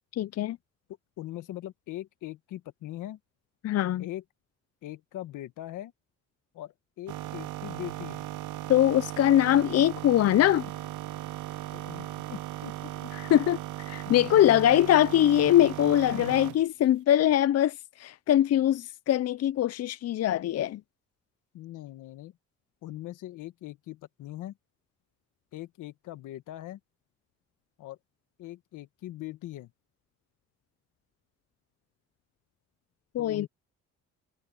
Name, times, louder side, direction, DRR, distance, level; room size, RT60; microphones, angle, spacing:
voice 1, 0.1-0.6 3.6-4.1 8.7-10.7 13.2-13.6 13.9-20.8 33.1-33.5, left 12 dB, 55° left, 0.6 m, -22 dB
voice 2, 1.2-3.2 4.0-4.2 4.8-5.9 6.5-8.3 11.7-13.1 14.0-14.8 16.1-16.4 21.5-22.4 22.8-24.6 25.5-26.8 27.8-28.0 28.4-29.7 33.2-33.5, left 14 dB, 85° left, 1.7 m, -41 dB
sound 1, 7.1-16.6, right 15 dB, 80° right, 0.9 m, -37 dB
cardioid pair, 90°, 30 cm